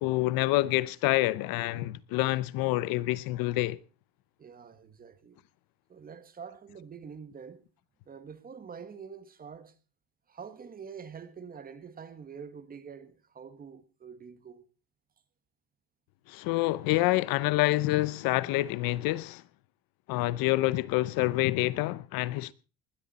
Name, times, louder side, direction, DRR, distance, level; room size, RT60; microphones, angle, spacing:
voice 1, 0.0-3.8 16.3-19.4 20.1-22.5, left 18 dB, 70° left, 0.8 m, -27 dB
voice 2, 4.4-5.4 5.9-7.6 8.1-9.7 10.3-14.6, right 6 dB, 25° right, 1.4 m, -46 dB
20.0 x 12.5 x 4.1 m
cardioid pair, 160°, 36 cm